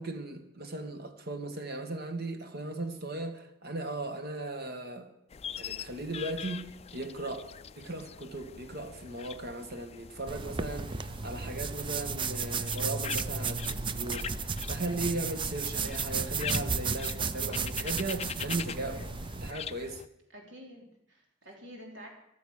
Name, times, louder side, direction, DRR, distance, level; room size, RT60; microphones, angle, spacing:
voice 1, 0.0-5.1 5.6-7.5 7.8-19.1 19.3-20.0, right 2 dB, 55° right, 1.8 m, -37 dB
sound 1, 5.3-20.1, left 7 dB, 35° left, 0.4 m, -43 dB
sound 2, 10.3-19.5, right 5 dB, 25° right, 0.5 m, -34 dB
voice 2, 20.3-22.1, equal, 70° right, 4.6 m, -49 dB
14.5 x 12.0 x 6.6 m
head